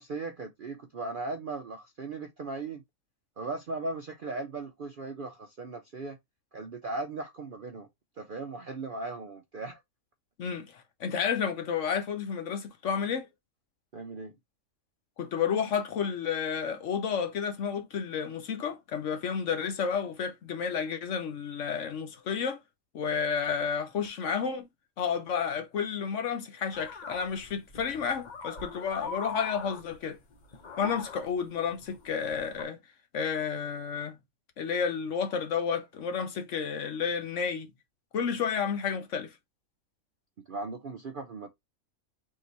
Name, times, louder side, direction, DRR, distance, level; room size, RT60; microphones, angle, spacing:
voice 1, 0.0-2.8 3.4-6.2 6.5-7.9 8.2-9.8 13.9-14.3 30.9-31.0 40.5-41.5, right 3 dB, 55° right, 0.6 m, -37 dB
voice 2, 10.4-13.3 15.2-22.6 22.9-24.7 25.0-30.2 30.8-32.8 33.1-34.2 34.6-37.7 38.1-39.3, left 6 dB, 60° left, 1.0 m, -31 dB
sound 1, 26.7-32.6, left 5 dB, 40° left, 0.8 m, -42 dB
3.7 x 2.8 x 3.9 m
omnidirectional pair, 1.5 m